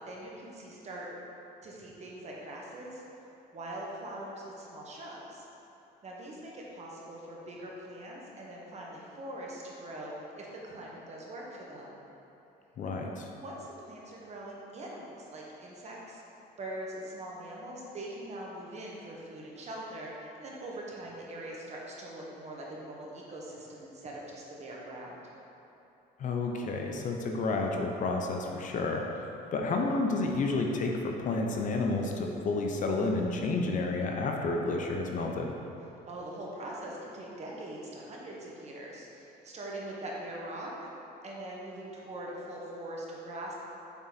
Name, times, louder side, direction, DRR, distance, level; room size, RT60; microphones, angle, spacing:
voice 1, 0.1-1.1 1.6-3.0 3.5-5.5 6.0-12.0 13.4-16.2 16.6-25.2 36.1-40.9 41.2-43.5, right 1 dB, 40° right, -3 dB, 1.3 m, -42 dB
voice 2, 12.8-13.3 26.2-29.0 29.5-35.5, left 3 dB, 50° left, 2 dB, 0.6 m, -30 dB
7.2 x 3.9 x 4.1 m, 3.0 s
cardioid pair, 110°, 17 cm